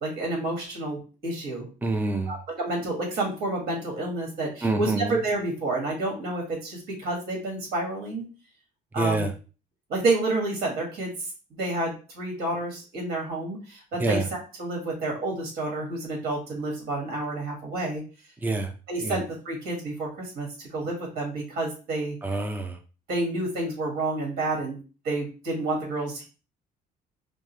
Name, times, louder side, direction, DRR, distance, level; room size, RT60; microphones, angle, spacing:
voice 1, 0.0-1.7 2.3-8.2 8.9-9.3 9.9-11.1 11.6-14.2 14.6-18.0 18.9-22.2 23.1-24.8 25.0-26.2, right 2 dB, 65° right, 0 dB, 1.9 m, -29 dB
voice 2, 1.8-2.3 4.6-5.2 9.0-9.3 14.0-14.2 18.4-18.7 19.0-19.2 22.2-22.8, right 2 dB, 10° right, 6 dB, 0.6 m, -26 dB
5.2 x 2.2 x 3.2 m, 0.34 s
cardioid pair, 110°, 17 cm